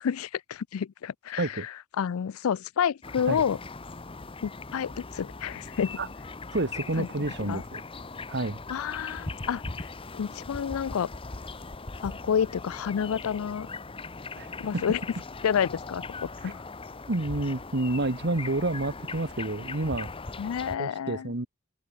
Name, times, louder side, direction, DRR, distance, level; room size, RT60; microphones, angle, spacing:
voice 1, 0.0-3.6 4.4-6.0 7.0-7.1 7.4-7.6 8.7-9.9 10.1-11.1 12.0-13.7 14.6-15.0 15.4-16.6 20.4-21.3, left 7 dB, 85° left, 0.4 m, -29 dB
sound 1, 3.0-20.8, left 3 dB, 25° left, 1.0 m, -40 dB
voice 2, 6.5-7.8 8.3-8.6 14.4-14.5 14.7-14.8 16.4-16.5 17.1-20.1 20.8-21.5, right 2 dB, 55° right, 1.6 m, -29 dB
head